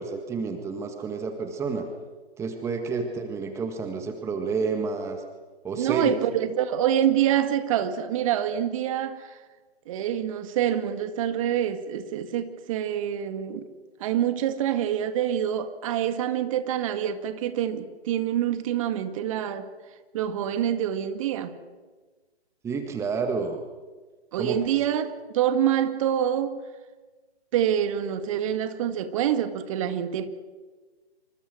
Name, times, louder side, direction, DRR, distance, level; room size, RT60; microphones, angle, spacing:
voice 1, 0.0-1.9 2.4-5.2 5.6-6.2 22.6-23.6 24.3-24.6, right 4 dB, 10° right, 1.7 m, -29 dB
voice 2, 5.8-9.4 9.9-13.7 14.0-19.7 20.1-21.6 24.3-26.6 27.5-30.3, right 10 dB, 30° right, 2.0 m, -26 dB
28.0 x 26.0 x 6.4 m
figure-of-eight pair, 135°, 33 cm